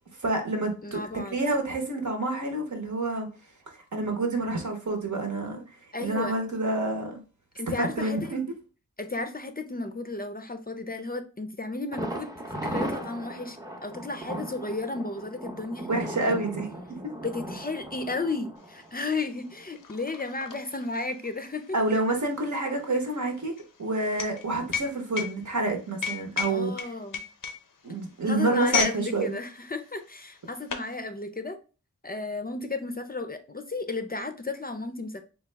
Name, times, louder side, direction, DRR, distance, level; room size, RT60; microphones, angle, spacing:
voice 1, 0.2-1.0 1.3-3.3 3.9-5.6 6.0-7.2 7.8-8.5 15.9-17.1 21.7-23.5 23.8-26.9 27.8-29.3, right 2 dB, 65° right, 0.9 m, -28 dB
voice 2, 0.8-1.4 5.9-6.4 7.5-8.4 9.0-12.3 12.6-15.9 16.3-16.4 17.2-21.8 26.5-27.2 28.3-31.6 32.0-35.2, left 3 dB, 30° left, 0.4 m, -33 dB
Thunder, 11.9-19.7 20.0-20.1 20.5-20.6, right 1 dB, 10° right, 0.6 m, -37 dB
sound 1, 18.7-18.8 19.1-29.0 29.3-29.6 30.3-30.9, left 6 dB, 85° left, 0.5 m, -34 dB
3.4 x 2.3 x 3.2 m
wide cardioid pair, 40°, 32 cm